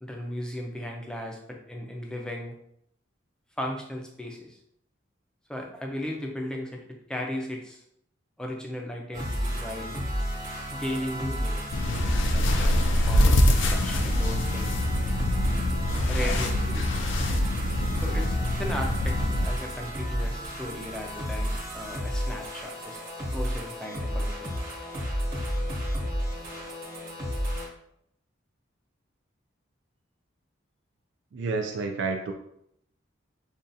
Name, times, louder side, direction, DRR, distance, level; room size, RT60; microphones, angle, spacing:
voice 1, 0.0-2.6 3.6-4.6 5.5-7.8 8.4-10.0 10.7-14.7 16.1-16.9 17.9-23.0 23.3-24.6, left 1 dB, 5° left, 0 dB, 0.5 m, -36 dB
sound 1, 9.1-27.7, equal, 45° right, 1.2 m, -32 dB
sound 2, 11.7-19.5, left 1 dB, 70° left, 0.4 m, -25 dB
voice 2, 31.3-32.3, right 4 dB, 65° right, 3 dB, 0.3 m, -29 dB
5.3 x 2.3 x 2.6 m, 0.73 s
head